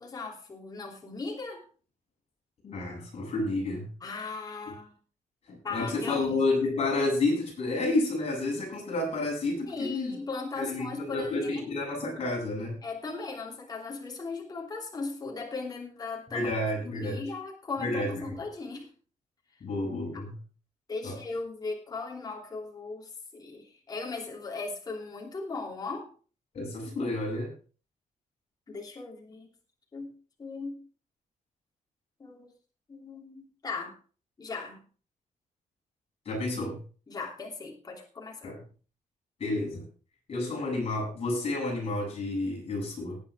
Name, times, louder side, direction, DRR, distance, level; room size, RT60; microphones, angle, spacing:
voice 1, 0.0-1.6 4.0-4.9 5.6-6.2 9.7-11.9 12.8-16.5 16.8-18.9 20.9-26.1 26.9-27.1 28.7-29.5 29.9-30.1 30.4-30.8 32.2-32.5 32.9-34.0 34.4-34.8 37.1-38.5, left 3 dB, 30° left, 0 dB, 3.1 m, -38 dB
voice 2, 2.6-3.9 5.5-10.2 10.5-12.8 16.3-17.2 17.8-18.4 19.6-20.4 21.0-21.2 26.5-27.5 36.2-36.8 38.4-38.6 39.4-39.9 40.3-43.2, left 2 dB, 50° left, -2 dB, 7.9 m, -30 dB
18.5 x 9.1 x 3.6 m, 0.38 s
cardioid pair, 120°, 13 cm